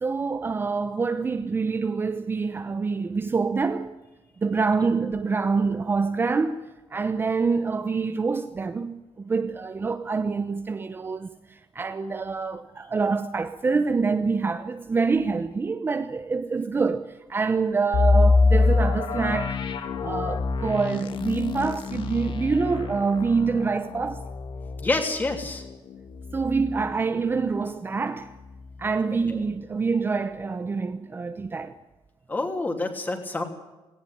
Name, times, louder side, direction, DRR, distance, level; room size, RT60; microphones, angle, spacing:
voice 1, 0.0-3.9 4.4-19.6 20.0-24.2 26.3-28.3 28.8-31.7, right 4 dB, 25° right, 0.8 m, -26 dB
sound 1, 17.9-27.7 28.0-28.1 28.6-28.9, left 4 dB, 60° left, 1.8 m, -25 dB
voice 2, 24.8-25.7 29.3-29.4 32.3-33.4, left 2 dB, 20° left, 3.1 m, -27 dB
18.0 x 17.5 x 9.2 m
cardioid pair, 160°, 9 cm